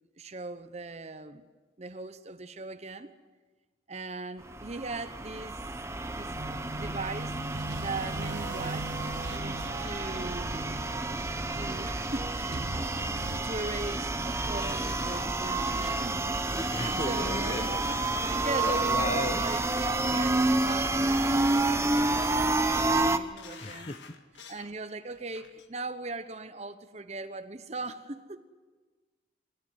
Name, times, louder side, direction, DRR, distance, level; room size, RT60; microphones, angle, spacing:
voice 1, 0.2-1.4 1.8-3.1 3.9-5.6 6.2-6.4 6.7-7.4 7.8-8.9 9.3-10.8 11.5-13.0 13.4-16.4 16.7-19.6 20.0-23.9 24.5-28.5, right 3 dB, 35° right, 1.0 m, -39 dB
sound 1, 4.5-23.2, right 2 dB, 15° right, 0.8 m, -29 dB
sound 2, 6.3-13.4, right 2 dB, 75° right, 1.3 m, -40 dB
sound 3, 14.6-17.8 18.4-18.8 19.2-19.8 20.2-20.7 21.1-21.8 22.2-22.7 23.1-24.7 25.1-25.7 26.1-26.2, left 6 dB, 70° left, 1.8 m, -50 dB
voice 2, 16.7-17.8 18.6-19.4 23.6-24.2, left 2 dB, 30° left, 0.9 m, -36 dB
25.0 x 14.0 x 9.7 m
head